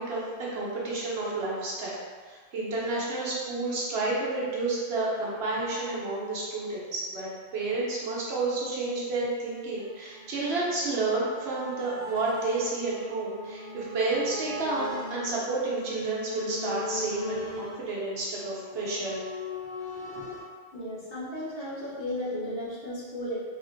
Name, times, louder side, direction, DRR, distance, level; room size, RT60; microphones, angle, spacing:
voice 1, 0.0-2.0 2.3-7.3 7.5-19.2, right 2 dB, 65° right, -6 dB, 1.0 m, -30 dB
sound 1, 9.8-20.4, left 1 dB, 90° left, 1.5 m, -40 dB
voice 2, 20.7-23.4, left 1 dB, 55° left, -9 dB, 1.1 m, -34 dB
3.0 x 2.5 x 2.5 m, 1.5 s
omnidirectional pair, 1.2 m